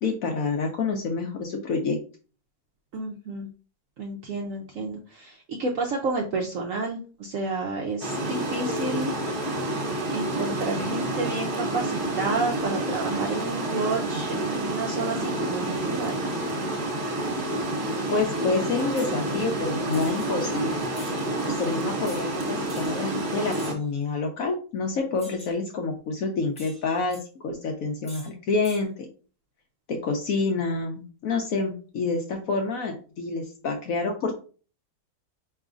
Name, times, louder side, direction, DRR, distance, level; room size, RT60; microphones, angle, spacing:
voice 1, 0.0-2.0 18.1-20.8 21.4-27.2 27.4-29.1 29.9-34.4, left 4 dB, 70° left, 3 dB, 0.8 m, -28 dB
voice 2, 2.9-3.5 4.0-9.1 10.1-16.2, right 3 dB, 70° right, 1 dB, 0.8 m, -30 dB
Water, 8.0-23.7, right 1 dB, 45° right, 1.2 m, -29 dB
sound 1, 19.0-19.2 19.9-20.3 20.9-21.2 22.1-22.3 22.7-22.9 23.5-23.9 25.2-25.6 26.6-27.2 28.0-28.3 28.6-28.8, equal, 10° left, 0.3 m, -45 dB
4.7 x 3.1 x 2.4 m, 0.37 s
omnidirectional pair, 2.0 m